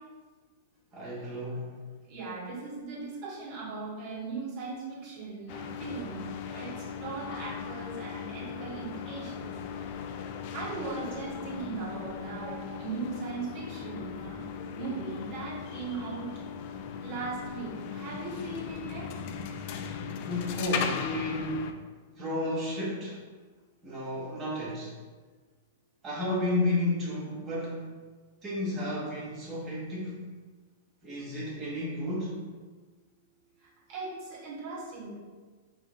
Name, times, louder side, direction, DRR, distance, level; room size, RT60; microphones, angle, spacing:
voice 1, 0.9-1.8 20.2-21.7 22.2-23.2 23.8-24.9 26.0-27.9 28.4-30.2 31.0-32.4, left 1 dB, 25° right, -7 dB, 1.3 m, -32 dB
voice 2, 2.1-6.2 6.5-6.7 7.0-9.5 9.9-10.0 10.5-14.4 14.8-16.3 17.0-19.1 33.9-35.2, right 4 dB, 50° right, -6 dB, 1.4 m, -38 dB
sound 1, 5.5-21.7, left 6 dB, 50° left, 0.3 m, -38 dB
4.9 x 3.0 x 2.3 m, 1.4 s
hypercardioid pair, 105°, 0 cm